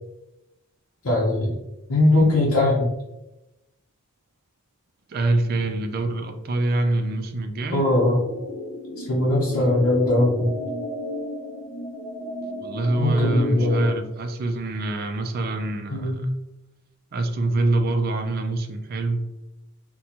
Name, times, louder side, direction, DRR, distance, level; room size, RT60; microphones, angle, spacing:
voice 1, 1.0-1.5 1.9-2.9 7.7-8.2 9.0-10.5 13.0-13.9 15.9-16.3, left 1 dB, 70° left, -4 dB, 0.7 m, -20 dB
voice 2, 5.1-7.9 12.6-16.3 17.1-19.3, right 2 dB, 45° right, 6 dB, 0.3 m, -25 dB
sound 1, 7.8-13.9, left 1 dB, 50° left, 1.0 m, -33 dB
4.0 x 2.2 x 2.8 m, 0.97 s
head